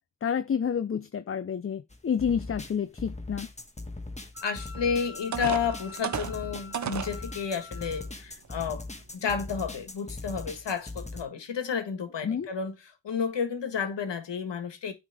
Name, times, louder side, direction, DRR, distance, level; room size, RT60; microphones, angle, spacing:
voice 1, 0.2-3.5 12.2-12.5, left 7 dB, 30° left, 0.5 m, -29 dB
sound 1, 1.9-11.2, left 2 dB, 15° left, 1.3 m, -40 dB
Wind instrument woodwind instrument, 4.3-8.1, left 5 dB, 10° right, 2.4 m, -47 dB
voice 2, 4.4-8.8 9.1-12.7 13.0-14.9, left 6 dB, 80° left, 1.6 m, -31 dB
sound 2, 4.7-4.8 5.3-7.2 7.8-7.9 8.5-8.7, right 8 dB, 45° right, 0.6 m, -33 dB
9.2 x 3.6 x 4.9 m
cardioid pair, 65°, 42 cm